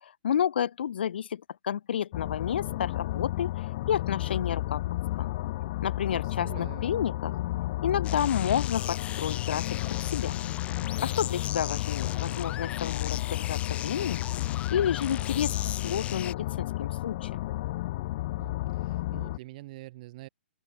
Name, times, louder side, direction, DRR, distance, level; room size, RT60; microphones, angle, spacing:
voice 1, 0.0-4.8 5.2-5.3 5.8-7.3 7.8-10.4 11.0-14.2 14.7-17.4, left 9 dB, 60° left, 1.2 m, -30 dB
sound 1, 2.1-19.4, left 17 dB, 40° left, 1.7 m, -32 dB
voice 2, 6.2-6.9 18.4-20.3, right 18 dB, 40° right, 3.6 m, -45 dB
sound 2, 8.0-16.3, left 11 dB, 20° left, 1.0 m, -38 dB
open air
figure-of-eight pair, 120°, 6 cm